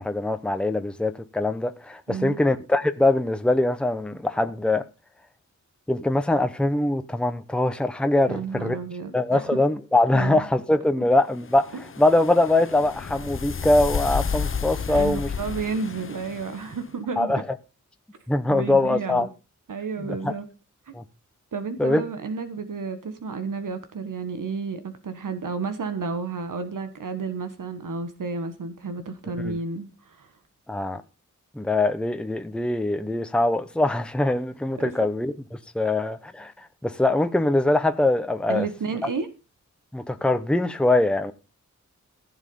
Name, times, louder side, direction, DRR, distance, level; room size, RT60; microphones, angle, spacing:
voice 1, 0.0-4.8 5.9-8.8 9.1-15.3 17.2-17.4 18.3-19.3 20.0-20.3 20.9-21.0 21.8-22.0 29.4-29.5 30.7-31.0 31.5-35.3 35.7-38.7 39.0-39.1 39.9-41.3, left 2 dB, 5° left, 0.9 m, -23 dB
voice 2, 2.1-2.4 8.3-9.4 10.1-10.5 11.7-11.8 14.9-17.3 18.5-19.3 19.7-20.5 20.9-21.0 21.5-30.3 34.8-34.9 38.5-39.3, right 4 dB, 85° right, 1.5 m, -31 dB
sound 1, 11.4-16.8, left 6 dB, 40° left, 0.7 m, -31 dB
15.0 x 7.3 x 5.4 m
wide cardioid pair, 105°, 31 cm